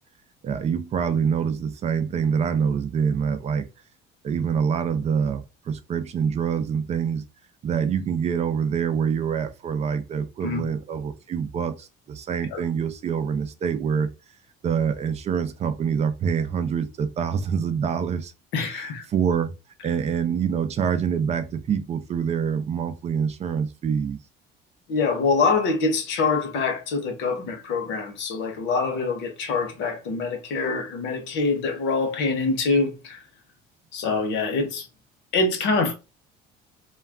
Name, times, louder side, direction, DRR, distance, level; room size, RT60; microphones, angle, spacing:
voice 1, 0.4-3.7 4.2-7.2 7.6-14.1 14.6-18.3 18.7-19.5 19.8-24.2, right 7 dB, 35° right, 0.4 m, -25 dB
voice 2, 18.5-19.1 24.9-33.2 33.9-34.9 35.3-35.9, left 4 dB, 70° left, 0.9 m, -25 dB
2.3 x 2.2 x 3.4 m
cardioid pair, 125°, 19 cm